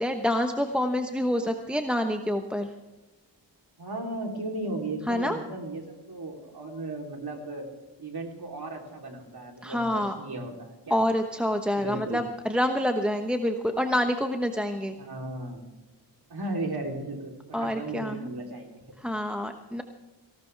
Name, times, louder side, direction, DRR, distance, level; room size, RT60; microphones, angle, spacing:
voice 1, 0.0-2.7 5.1-5.4 9.6-10.2 10.9-15.0 17.5-18.3 19.0-19.8, left 1 dB, ahead, 5 dB, 1.1 m, -27 dB
voice 2, 3.8-7.7 8.0-11.0 11.8-12.2 15.0-15.6 16.3-18.8, right 2 dB, 60° right, 2 dB, 3.5 m, -36 dB
18.5 x 17.5 x 3.4 m, 1.1 s
wide cardioid pair, 70°, 43 cm